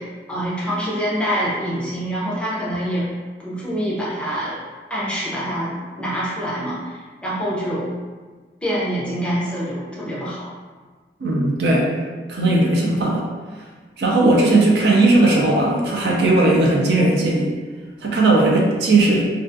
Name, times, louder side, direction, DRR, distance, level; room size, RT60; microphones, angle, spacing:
voice 1, 0.0-3.1 3.4-4.6 4.9-7.9 8.6-10.4, equal, 5° left, -8 dB, 0.5 m, -25 dB
voice 2, 11.2-11.9 12.3-13.2 14.0-17.5 18.0-19.3, right 2 dB, 70° right, -2 dB, 0.4 m, -17 dB
2.4 x 2.3 x 2.5 m, 1.4 s
head